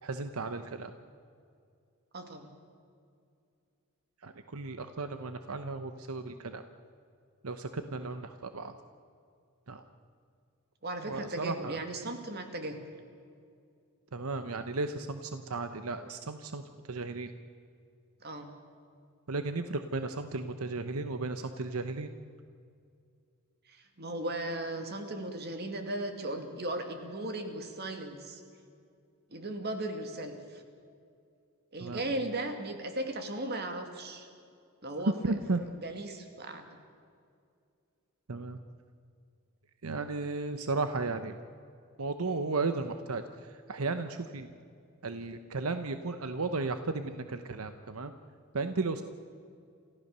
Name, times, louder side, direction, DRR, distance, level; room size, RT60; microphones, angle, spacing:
voice 1, 0.0-0.9 4.2-6.6 7.4-8.7 9.7-9.8 11.0-11.8 14.1-16.6 16.9-17.3 19.3-22.1 31.8-32.0 35.2-35.6 38.3-38.6 39.8-41.3 42.0-44.5 45.0-48.1 48.5-49.0, right 3 dB, 85° right, 9 dB, 0.9 m, -34 dB
voice 2, 2.1-2.5 10.8-12.8 18.2-18.5 23.7-28.4 29.3-30.6 31.7-34.3 34.8-35.4 35.8-36.6, right 1 dB, 50° right, 5 dB, 2.5 m, -37 dB
28.5 x 14.5 x 6.8 m, 2.4 s
head